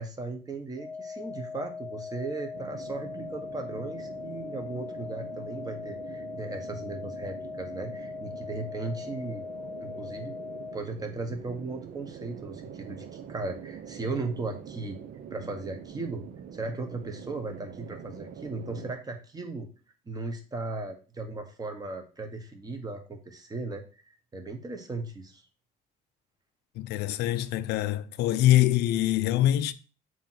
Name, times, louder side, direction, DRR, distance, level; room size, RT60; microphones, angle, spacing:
voice 1, 0.0-9.5 9.8-10.3 10.7-15.0 15.3-16.2 16.5-19.7 20.1-25.4, right 3 dB, 20° right, 1.5 m, -37 dB
sound 1, 0.8-10.8, left 5 dB, 25° left, 1.0 m, -40 dB
sound 2, 2.5-18.9, right 8 dB, 60° right, 0.9 m, -44 dB
voice 2, 26.8-29.7, left 13 dB, 80° left, 0.6 m, -24 dB
7.2 x 3.1 x 5.9 m
cardioid pair, 110°, 17 cm